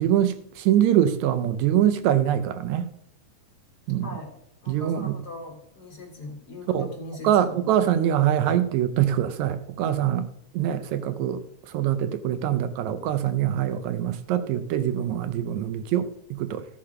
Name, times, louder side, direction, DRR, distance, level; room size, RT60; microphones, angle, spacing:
voice 1, 0.0-2.9 3.9-4.1 4.7-5.2 6.7-6.9 7.2-10.3 10.5-16.7, right 11 dB, 80° right, 2.0 m, -24 dB
voice 2, 4.6-7.6, left 1 dB, 35° left, 3.0 m, -40 dB
15.0 x 6.6 x 5.8 m
omnidirectional pair, 3.4 m